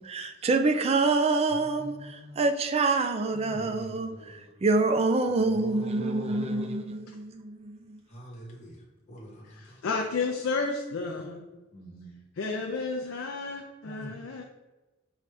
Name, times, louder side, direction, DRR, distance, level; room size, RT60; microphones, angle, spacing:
voice 1, 0.0-8.0, right 3 dB, 30° right, 0.4 m, -27 dB
voice 2, 1.5-2.3 3.3-4.5 5.3-6.8 8.1-8.8 9.1-9.8 11.1-11.4 11.7-12.2 13.8-14.2, equal, 35° left, 0.9 m, -43 dB
voice 3, 9.8-11.4 12.4-14.4, left 4 dB, 80° left, 0.5 m, -31 dB
4.8 x 2.6 x 3.3 m
head